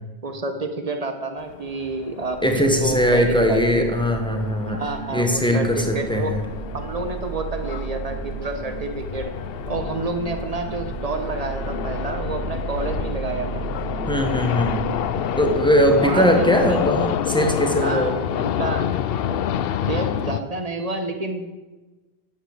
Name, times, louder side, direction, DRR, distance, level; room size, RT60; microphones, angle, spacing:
voice 1, 0.2-3.9 4.6-6.4 6.7-9.3 9.7-13.7 15.9-16.8 17.7-19.4 19.9-21.5, right 2 dB, 35° right, 6 dB, 1.4 m, -29 dB
sound 1, 1.4-20.4, left 10 dB, 65° left, 0.7 m, -29 dB
sound 2, 2.3-18.3, right 6 dB, 65° right, 1.2 m, -35 dB
voice 2, 2.4-4.8 5.1-6.4 14.1-14.9 15.4-18.2, equal, 5° left, 3 dB, 1.5 m, -20 dB
10.0 x 8.0 x 8.1 m, 1.2 s
omnidirectional pair, 1.1 m